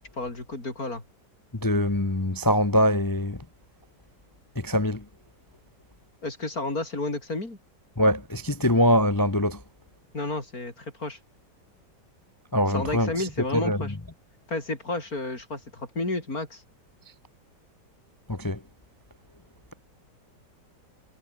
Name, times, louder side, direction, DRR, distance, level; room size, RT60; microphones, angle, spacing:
voice 1, 0.1-1.0 6.2-7.6 10.1-11.2 12.7-14.0 14.5-16.6, left 2 dB, 50° left, 6.4 m, -31 dB
voice 2, 1.6-3.4 4.6-5.0 8.0-9.6 12.5-13.1 13.5-13.8 18.3-18.6, equal, 20° left, 0.7 m, -23 dB
omnidirectional pair, 1.9 m